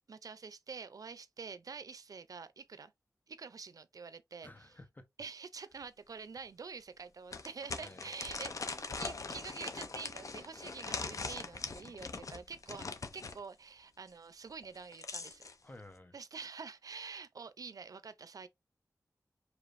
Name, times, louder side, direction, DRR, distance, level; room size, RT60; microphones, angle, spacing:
voice 1, 0.1-2.9 3.3-4.5 5.2-15.4 16.1-18.5, right 5 dB, 70° right, 0.5 m, -47 dB
voice 2, 4.4-5.0 7.8-8.1 8.6-8.8 15.6-16.1, left 2 dB, 30° left, 0.9 m, -53 dB
sound 1, 5.8-5.9 6.4-6.5 7.3-13.4 14.6-15.5, left 4 dB, 60° left, 0.6 m, -41 dB
4.9 x 3.1 x 2.6 m
wide cardioid pair, 70°, 6 cm